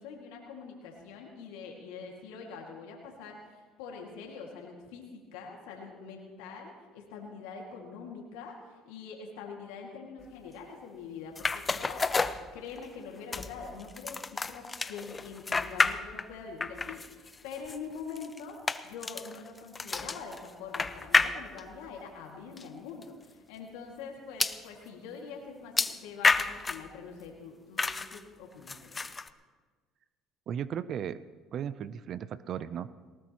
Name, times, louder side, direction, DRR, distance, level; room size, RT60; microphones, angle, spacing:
voice 1, 0.0-29.0, left 5 dB, 85° left, 0 dB, 2.1 m, -44 dB
sound 1, 11.4-13.0 13.3-16.3 16.6-21.8 22.6-22.7 23.0-23.1 24.4-24.6 25.8-26.9 27.8-28.2 28.7-29.3, left 4 dB, 25° left, 0.6 m, -30 dB
voice 2, 30.5-31.2 31.5-33.0, right 9 dB, 55° right, 16 dB, 0.5 m, -36 dB
19.0 x 18.5 x 3.0 m, 1.4 s
supercardioid pair, 85°, 0 cm